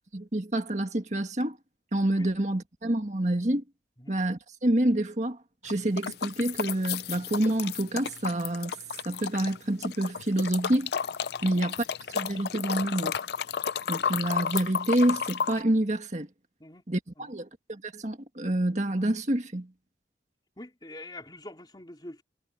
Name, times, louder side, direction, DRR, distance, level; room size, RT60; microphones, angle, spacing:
voice 1, 0.1-1.6 1.9-3.6 4.1-8.8 9.1-10.9 11.4-13.1 13.9-16.3 16.9-19.7, right 1 dB, 40° right, 1.8 m, -28 dB
sound 1, 5.6-9.6 9.8-15.6, left 7 dB, 65° left, 0.5 m, -32 dB
voice 2, 20.6-22.2, left 1 dB, 25° left, 3.2 m, -44 dB
head